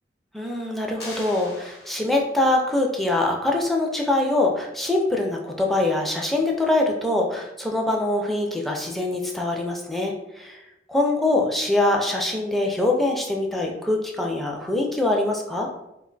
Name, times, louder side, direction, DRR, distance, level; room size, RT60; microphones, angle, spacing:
voice 1, 0.3-10.6 10.9-15.7, left 2 dB, ahead, -1 dB, 0.3 m, -23 dB
sound 1, 1.0-2.5, left 2 dB, 60° left, 1.0 m, -41 dB
2.4 x 2.2 x 3.8 m, 0.90 s
head